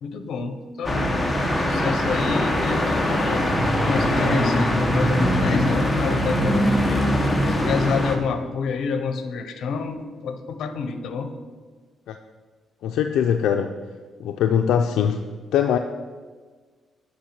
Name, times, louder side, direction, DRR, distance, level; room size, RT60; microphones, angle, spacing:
voice 1, 0.0-1.1 1.6-3.6 3.8-7.1 7.5-11.3, left 5 dB, 70° left, 9 dB, 0.8 m, -28 dB
sound 1, 0.8-8.2, equal, 15° left, 1.1 m, -22 dB
voice 2, 12.8-13.7 14.2-15.2 15.5-15.8, left 8 dB, 90° left, 5 dB, 0.4 m, -21 dB
8.5 x 5.3 x 5.9 m, 1.5 s
cardioid pair, 105°, 0 cm